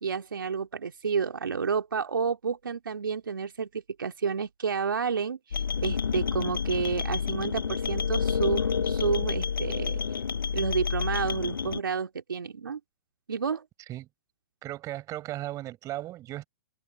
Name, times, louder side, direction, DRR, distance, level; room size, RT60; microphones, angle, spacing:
voice 1, 0.0-10.0 10.5-12.8 13.3-13.6, right 6 dB, 85° right, 2.6 m, -30 dB
sound 1, 5.5-11.8, left 6 dB, 85° left, 0.9 m, -29 dB
voice 2, 14.6-16.4, right 15 dB, 30° right, 6.0 m, -36 dB
hypercardioid pair, 120°, 11 cm